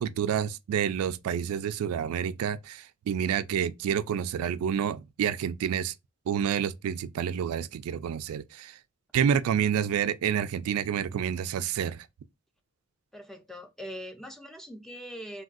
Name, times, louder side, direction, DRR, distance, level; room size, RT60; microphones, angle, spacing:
voice 1, 0.0-5.9 6.3-8.8 9.1-12.1, right 8 dB, 85° right, 0.3 m, -29 dB
voice 2, 13.1-15.4, equal, ahead, 0.3 m, -42 dB
3.4 x 2.3 x 2.4 m
head